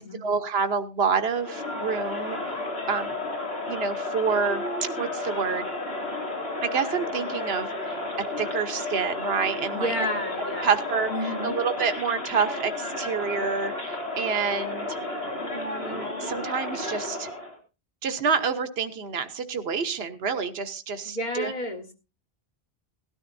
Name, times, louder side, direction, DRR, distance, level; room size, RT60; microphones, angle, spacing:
voice 1, 0.2-2.6 2.9-3.2 3.7-4.6 5.0-5.7 6.6-9.9 10.6-15.0 15.5-17.3 18.0-21.5, right 5 dB, 75° right, 8 dB, 1.2 m, -28 dB
Crowd, 1.3-17.6, left 2 dB, 80° left, 3.0 m, -32 dB
voice 2, 9.7-10.7 11.1-11.6 21.0-21.9, left 1 dB, 45° left, 3 dB, 2.0 m, -31 dB
18.0 x 13.0 x 2.6 m, 0.30 s
omnidirectional pair, 1.0 m